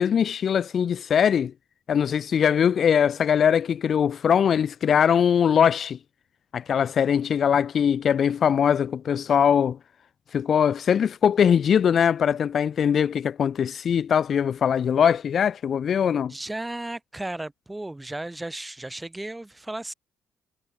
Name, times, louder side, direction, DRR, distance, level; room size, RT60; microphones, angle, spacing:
voice 1, 0.0-1.5 1.9-6.0 6.5-9.8 10.3-16.3, left 8 dB, 55° left, 1.4 m, -21 dB
voice 2, 16.3-19.9, right 1 dB, 10° right, 5.0 m, -34 dB
cardioid pair, 90°, 0 cm